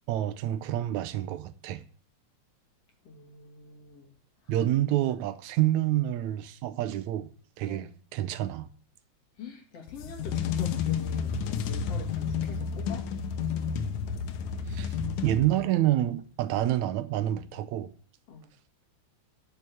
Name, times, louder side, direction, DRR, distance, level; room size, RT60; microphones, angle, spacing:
voice 1, 0.1-1.8 4.5-7.3 7.6-8.7 14.7-15.0 15.2-17.9, right 13 dB, 80° right, 2.1 m, -28 dB
voice 2, 3.0-4.1 4.4-4.5 7.7-7.8 9.4-13.1 18.3-18.5, left 5 dB, 60° left, 3.4 m, -45 dB
sound 1, 9.9-15.9, left 7 dB, 90° left, 2.2 m, -31 dB
9.6 x 6.3 x 8.7 m
omnidirectional pair, 3.3 m